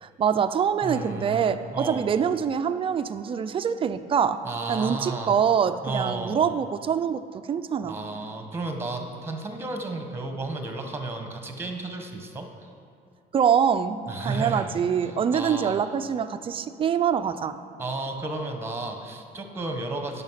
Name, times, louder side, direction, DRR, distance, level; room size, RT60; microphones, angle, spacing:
voice 1, 0.0-4.4 4.7-7.2 7.5-8.0 13.3-17.6, right 7 dB, 30° right, 10 dB, 0.4 m, -24 dB
voice 2, 0.8-2.1 4.4-5.4 5.8-6.4 7.8-12.7 14.1-14.7 15.3-15.8 17.8-20.2, right 2 dB, 15° right, 4 dB, 1.2 m, -33 dB
10.5 x 5.8 x 5.7 m, 2.5 s
cardioid pair, 110°, 17 cm